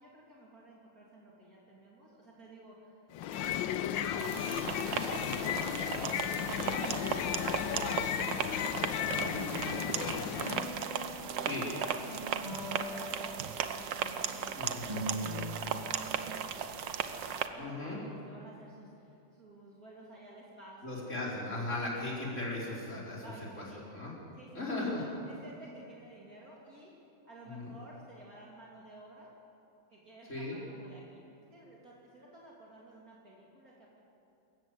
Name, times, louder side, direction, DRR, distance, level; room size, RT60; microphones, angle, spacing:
voice 1, 0.0-10.9 11.3-16.8 17.1-21.4 23.2-23.8 24.3-26.9 27.2-29.3 29.9-33.9, right 1 dB, 50° right, -5 dB, 3.4 m, -52 dB
sound 1, 3.1-10.8, left 10 dB, 90° left, 1.5 m, -34 dB
sound 2, 4.2-17.5, right 8 dB, 80° right, 1.7 m, -36 dB
sound 3, 9.1-14.1 14.6-15.5, right 1 dB, 20° right, 5.1 m, -42 dB
voice 2, 17.6-18.0 20.8-23.2 23.5-23.6 23.9-24.2 24.5-25.1 27.4-27.7 30.3-30.6, left 2 dB, 40° left, -5 dB, 4.8 m, -37 dB
26.5 x 15.0 x 8.2 m, 2.8 s
omnidirectional pair, 2.0 m